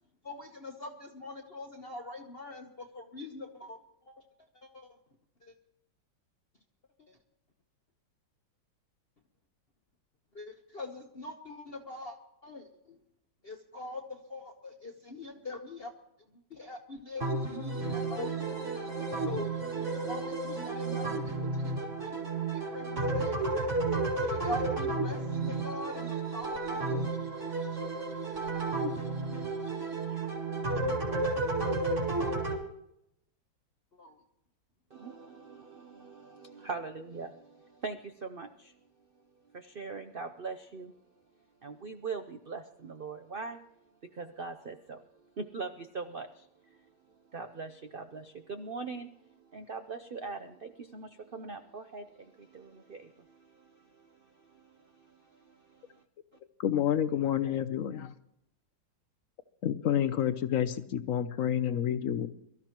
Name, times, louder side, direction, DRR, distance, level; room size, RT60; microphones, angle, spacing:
voice 1, 0.2-3.8 4.1-4.2 4.6-4.9 5.4-5.5 7.1-7.2 10.3-12.2 12.4-13.0 13.4-15.9 16.5-18.3 19.3-22.2 22.5-23.7 24.2-27.1 27.3-27.5 27.8-27.9 33.9-34.2, left 2 dB, 40° left, 3 dB, 1.1 m, -43 dB
sound 1, 17.2-32.6, right 3 dB, 40° right, 3.6 m, -32 dB
voice 2, 34.9-38.7 39.5-40.9 41.6-43.6 44.1-45.0 45.4-46.8 47.3-56.0, right 4 dB, 65° right, 7 dB, 0.5 m, -42 dB
voice 3, 56.6-58.1 59.6-62.3, left 10 dB, 65° left, 12 dB, 0.8 m, -29 dB
23.5 x 13.5 x 3.0 m, 0.78 s
omnidirectional pair, 2.0 m